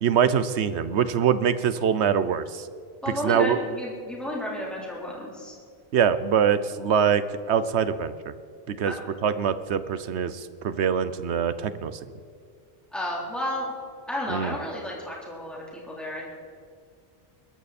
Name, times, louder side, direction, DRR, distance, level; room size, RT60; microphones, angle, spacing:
voice 1, 0.0-2.7 3.2-3.6 5.9-8.3 8.7-8.9 9.2-11.9 14.3-14.6, right 8 dB, 85° right, 13 dB, 1.1 m, -24 dB
voice 2, 3.0-5.5 8.9-9.0 12.9-13.7 14.1-16.2, left 1 dB, ahead, -4 dB, 3.7 m, -32 dB
21.5 x 13.5 x 4.3 m, 2.2 s
omnidirectional pair, 1.1 m